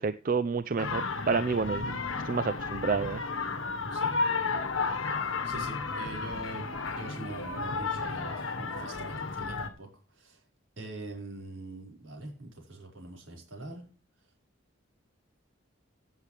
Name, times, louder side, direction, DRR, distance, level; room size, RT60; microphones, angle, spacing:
voice 1, 0.0-2.0 2.2-3.2, right 4 dB, 45° right, 14 dB, 0.4 m, -29 dB
sound 1, 0.8-9.7, left 4 dB, 80° left, 1.4 m, -33 dB
voice 2, 5.2-10.4 10.8-13.8, right 2 dB, 75° right, 0 dB, 5.1 m, -43 dB
16.5 x 7.3 x 3.3 m, 0.36 s
head